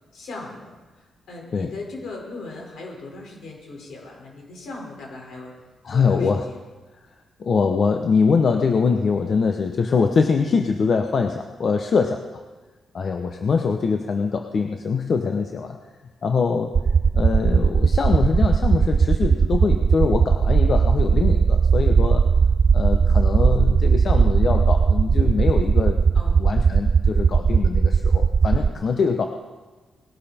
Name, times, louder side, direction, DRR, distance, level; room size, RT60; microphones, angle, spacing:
voice 1, 0.1-5.5 5.9-6.6 26.1-26.4 28.5-28.8, left 2 dB, 80° left, -1 dB, 5.1 m, -38 dB
voice 2, 5.8-6.4 7.4-12.4 12.9-15.8 16.2-16.8 17.1-22.3 22.7-26.0 26.4-29.3, left 5 dB, 55° left, 4 dB, 1.0 m, -23 dB
sound 1, 16.7-28.7, right 5 dB, 50° right, 0.3 m, -18 dB
20.0 x 12.0 x 4.4 m, 1.3 s
cardioid pair, 95°, 0 cm